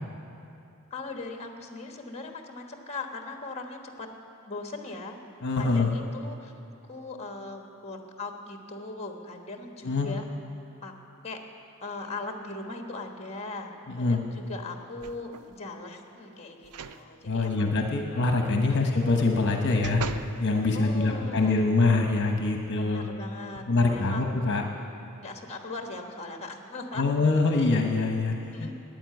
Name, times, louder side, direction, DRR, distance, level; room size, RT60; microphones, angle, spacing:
voice 1, 0.9-4.1 4.5-5.2 5.6-6.5 6.9-10.2 10.8-10.9 11.2-11.4 11.8-17.8 18.7-18.8 20.7-21.7 22.8-24.2 25.2-27.3 28.5-28.7, left 3 dB, 30° left, 3 dB, 1.3 m, -39 dB
voice 2, 5.4-5.9 9.8-10.1 13.9-14.2 17.3-20.0 20.4-23.0 23.7-24.6 26.9-28.7, left 3 dB, 55° left, 2 dB, 1.0 m, -24 dB
sound 1, 15.0-15.6 16.6-17.0 17.4-17.5 19.1-20.4 21.0-21.1, right 5 dB, 80° right, 0.6 m, -39 dB
12.5 x 9.2 x 9.3 m, 2.8 s
head